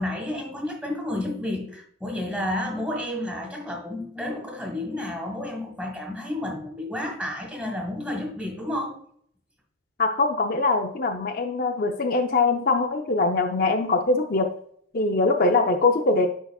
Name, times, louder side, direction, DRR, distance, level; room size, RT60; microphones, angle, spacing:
voice 1, 0.0-9.0, left 1 dB, 5° right, 1 dB, 1.6 m, -31 dB
voice 2, 10.0-14.5 14.9-16.3, left 3 dB, 45° left, 4 dB, 0.6 m, -22 dB
10.0 x 4.0 x 2.3 m, 0.63 s
head